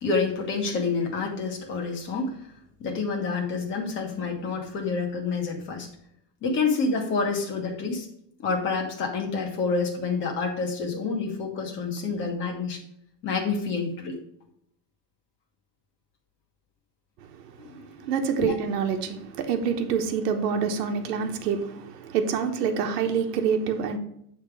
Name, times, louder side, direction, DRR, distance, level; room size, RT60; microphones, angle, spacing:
voice 1, 0.0-2.3 2.8-5.9 6.4-8.1 8.4-12.8 13.2-14.2 17.6-17.9 18.4-18.6, left 4 dB, 25° left, 1.3 m, -28 dB
voice 2, 18.0-24.0, right 6 dB, 80° right, 1.2 m, -26 dB
8.2 x 3.6 x 4.8 m
supercardioid pair, 170°, 47 cm